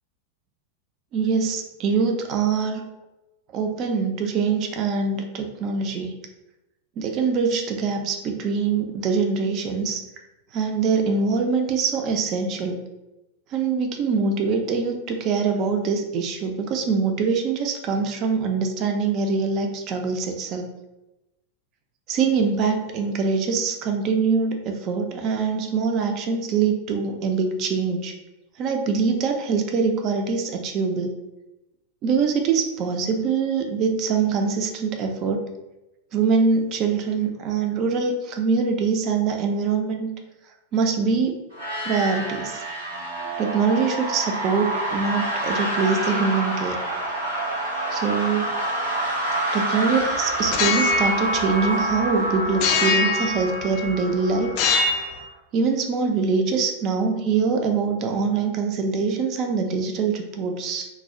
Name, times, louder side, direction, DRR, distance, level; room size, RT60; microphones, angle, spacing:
voice 1, 1.1-2.9 3.5-6.2 7.0-10.0 10.5-12.8 13.5-20.7 22.1-28.1 28.6-31.2 32.0-35.4 36.1-40.1 40.7-41.4 41.8-42.6 43.4-46.8 47.9-48.6 49.5-54.5 55.5-60.9, right 5 dB, 35° right, 4 dB, 0.4 m, -23 dB
sound 1, 41.5-55.2, right 1 dB, 70° right, 0.8 m, -27 dB
sound 2, 50.4-52.1 52.6-53.9 54.5-55.2, left 4 dB, 45° left, 0.3 m, -24 dB
2.3 x 2.1 x 3.5 m, 0.98 s
figure-of-eight pair, 90°, 0 cm